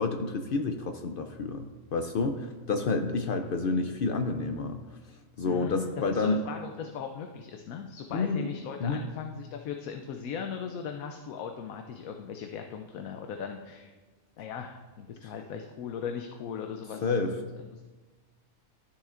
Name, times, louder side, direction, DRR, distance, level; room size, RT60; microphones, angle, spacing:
voice 1, 0.0-4.8 5.4-6.4 8.1-8.5 8.8-9.0 15.2-15.3 17.0-17.3, left 3 dB, 65° left, 6 dB, 0.5 m, -29 dB
voice 2, 5.4-13.9 14.4-17.4 17.7-17.9, left 7 dB, 85° left, 4 dB, 1.1 m, -38 dB
12.5 x 7.1 x 2.5 m, 1.2 s
omnidirectional pair, 1.4 m